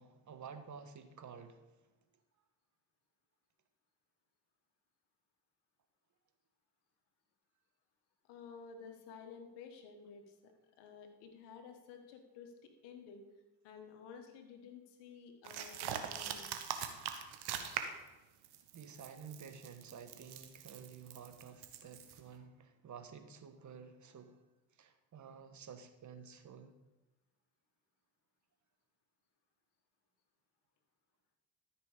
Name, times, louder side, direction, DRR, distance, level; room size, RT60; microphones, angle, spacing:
voice 1, 0.0-1.8 18.7-24.4 24.7-26.8, right 6 dB, 45° right, 1.3 m, -52 dB
voice 2, 8.3-10.5 10.8-13.3 13.6-16.5, left 6 dB, 85° left, 1.5 m, -53 dB
sound 1, 15.4-18.1 18.4-22.2, right 9 dB, 70° right, 1.2 m, -42 dB
13.0 x 6.0 x 5.0 m
supercardioid pair, 65°, 40 cm